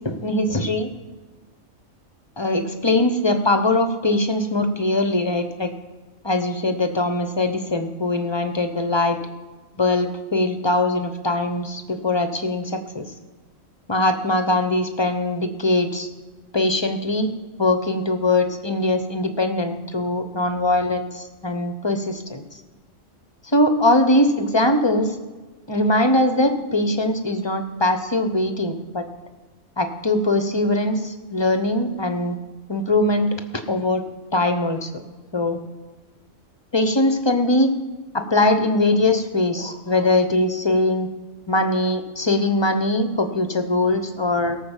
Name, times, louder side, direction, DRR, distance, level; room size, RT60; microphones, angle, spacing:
voice 1, 0.0-0.9 2.4-5.7 6.2-9.2 9.8-13.1 13.9-16.1 16.5-17.3 17.6-22.4 23.5-25.1 25.7-29.0 29.8-32.4 32.7-33.3 33.7-34.0 34.3-34.9 35.3-35.6 36.7-37.7 38.1-41.1 41.5-44.6, left 2 dB, 25° left, 8 dB, 0.8 m, -21 dB
17.5 x 6.3 x 7.3 m, 1.2 s
omnidirectional pair, 1.4 m